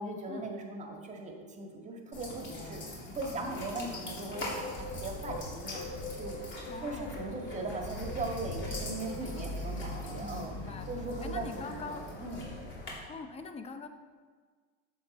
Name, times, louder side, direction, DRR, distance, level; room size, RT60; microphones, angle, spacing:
voice 1, 0.0-2.8 3.1-5.8 6.2-6.4 6.8-10.5 10.9-11.8 12.2-12.4, right 2 dB, 20° right, 2 dB, 1.7 m, -39 dB
sound 1, 2.1-12.9, left 1 dB, 35° left, 2.9 m, -41 dB
Bird, 4.2-12.5, left 2 dB, 70° left, 1.6 m, -46 dB
voice 2, 6.7-7.3 10.2-10.9 11.2-12.1 13.1-13.9, left 4 dB, 20° left, 8 dB, 0.7 m, -43 dB
10.5 x 7.4 x 4.2 m, 1.5 s
supercardioid pair, 125°, 31 cm